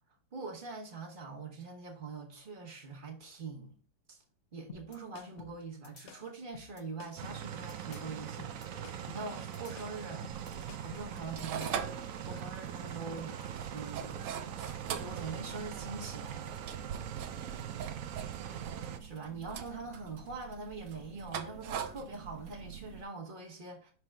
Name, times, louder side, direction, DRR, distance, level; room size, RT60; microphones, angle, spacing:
voice 1, 0.3-3.8 4.1-4.2 4.5-10.3 10.8-11.8 12.3-13.4 13.7-14.3 14.9-16.6 19.0-23.9, right 4 dB, 35° right, 1.0 m, -43 dB
sound 1, 4.7-11.9, left 6 dB, 70° left, 0.6 m, -52 dB
sound 2, 7.2-19.0, right 9 dB, 90° right, 0.7 m, -42 dB
sound 3, 10.3-23.0, right 7 dB, 70° right, 1.2 m, -43 dB
5.9 x 4.8 x 3.3 m
omnidirectional pair, 2.1 m